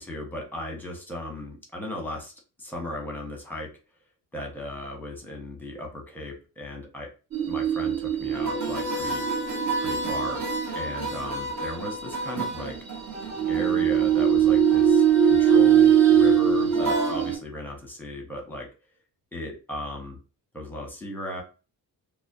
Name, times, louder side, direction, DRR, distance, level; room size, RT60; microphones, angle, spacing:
voice 1, 0.0-2.3 2.6-3.7 4.3-7.1 7.5-9.3 9.8-10.4 10.7-12.7 13.5-18.7 19.3-20.2 20.5-21.4, left 1 dB, 5° left, 0 dB, 0.8 m, -36 dB
sound 1, 7.3-17.3, right 7 dB, 45° right, 0.9 m, -22 dB
2.3 x 2.0 x 2.6 m, 0.33 s
cardioid pair, 100°, 38 cm